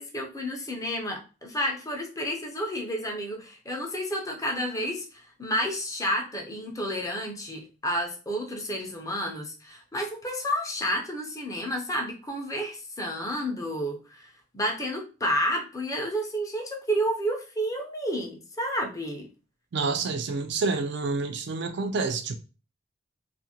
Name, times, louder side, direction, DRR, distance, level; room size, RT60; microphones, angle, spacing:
voice 1, 0.0-14.3 14.5-19.3, equal, 20° left, 0.5 m, -30 dB
voice 2, 19.7-22.4, right 4 dB, 65° right, 0.4 m, -28 dB
2.5 x 2.5 x 2.8 m
head